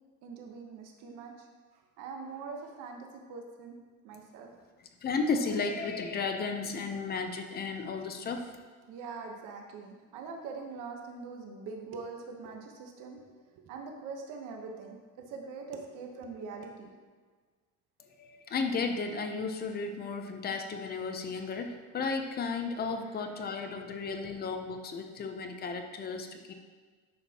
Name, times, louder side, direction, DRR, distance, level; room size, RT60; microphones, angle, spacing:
voice 1, 0.2-1.5 2.0-3.8 4.0-4.5 8.8-13.2 13.5-16.9, right 4 dB, 65° right, 2 dB, 1.0 m, -43 dB
voice 2, 5.0-8.5 18.0-26.5, left 4 dB, 30° left, 5 dB, 0.6 m, -34 dB
11.0 x 6.4 x 2.9 m, 1.5 s
cardioid pair, 165°, 33 cm